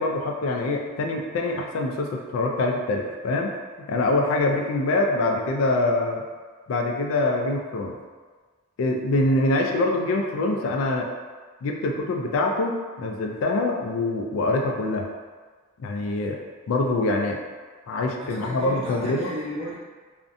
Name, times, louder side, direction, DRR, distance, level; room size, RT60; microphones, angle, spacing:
voice 1, 0.0-6.2 6.7-8.0 8.8-11.1 11.6-15.1 15.8-16.4 16.7-17.4 17.9-19.3, left 2 dB, 75° left, 2 dB, 0.3 m, -24 dB
voice 2, 18.2-19.7, equal, 30° right, -8 dB, 0.7 m, -34 dB
2.5 x 2.1 x 2.5 m, 1.5 s
head